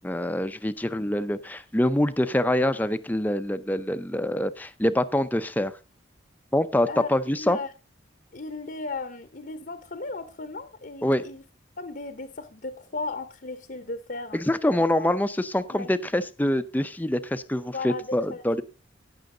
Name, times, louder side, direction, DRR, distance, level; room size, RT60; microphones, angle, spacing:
voice 1, 0.0-5.7 6.5-7.6 11.0-11.2 14.5-18.6, left 1 dB, 10° left, 0.5 m, -25 dB
voice 2, 6.9-7.7 8.3-11.4 11.8-14.4 14.7-15.1 15.7-15.9 17.7-18.4, left 3 dB, 45° left, 0.8 m, -36 dB
17.0 x 6.3 x 3.8 m
head